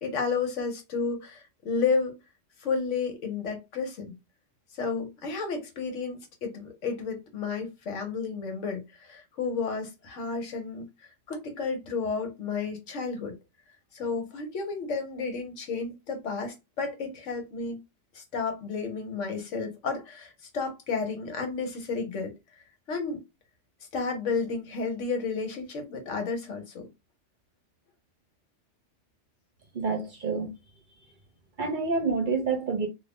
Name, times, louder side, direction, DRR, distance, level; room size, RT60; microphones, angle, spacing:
voice 1, 0.0-2.2 2.6-4.1 4.8-10.9 11.3-13.4 13.9-17.8 18.1-22.3 22.9-23.2 23.9-26.9, left 4 dB, 80° left, 1.3 m, -32 dB
voice 2, 29.7-30.5 31.6-32.9, right 4 dB, 50° right, 0.8 m, -28 dB
2.7 x 2.6 x 3.4 m
omnidirectional pair, 1.2 m